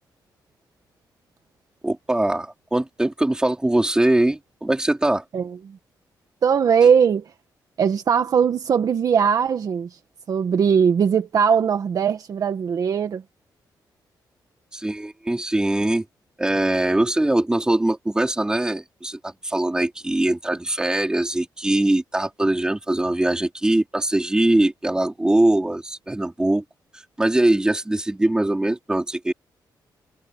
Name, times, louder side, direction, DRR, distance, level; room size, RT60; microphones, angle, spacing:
voice 1, 1.8-5.2 14.7-16.0 16.4-26.6 27.2-29.3, right 1 dB, 10° right, 4.2 m, -22 dB
voice 2, 5.3-5.8 6.4-7.2 7.8-9.9 10.3-13.2, right 7 dB, 50° right, 1.5 m, -20 dB
wide cardioid pair, 155°, 8 cm